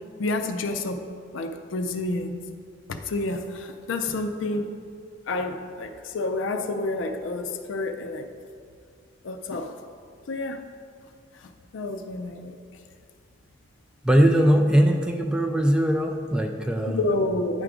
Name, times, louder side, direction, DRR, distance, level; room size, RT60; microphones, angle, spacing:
voice 1, 0.2-1.0 1.3-2.4 2.9-4.7 5.3-8.3 9.2-9.8 10.3-10.6 11.3-12.6 16.9-17.6, left 2 dB, 75° left, 6 dB, 0.4 m, -29 dB
voice 2, 14.0-17.0, equal, 5° right, 3 dB, 0.3 m, -20 dB
9.8 x 3.6 x 4.7 m, 2.2 s
head